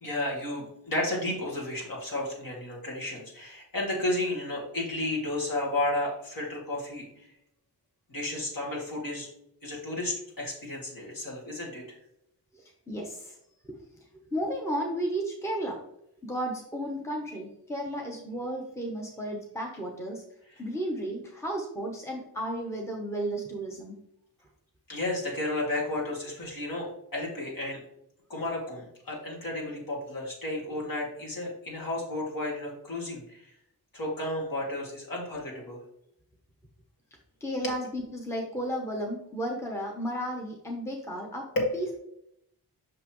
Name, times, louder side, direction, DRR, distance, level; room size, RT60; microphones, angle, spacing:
voice 1, 0.0-7.1 8.1-9.3 9.6-12.0 24.9-27.8 28.3-33.5 33.9-35.8 37.6-37.8 41.6-41.8, left 1 dB, 55° left, -3 dB, 2.4 m, -32 dB
voice 2, 12.5-13.4 13.6-13.8 14.3-15.8 16.2-20.2 20.6-24.0 37.4-41.5 41.7-42.0, right 1 dB, 5° left, 0 dB, 0.8 m, -33 dB
6.2 x 5.6 x 3.0 m, 0.77 s
wide cardioid pair, 145°, 40 cm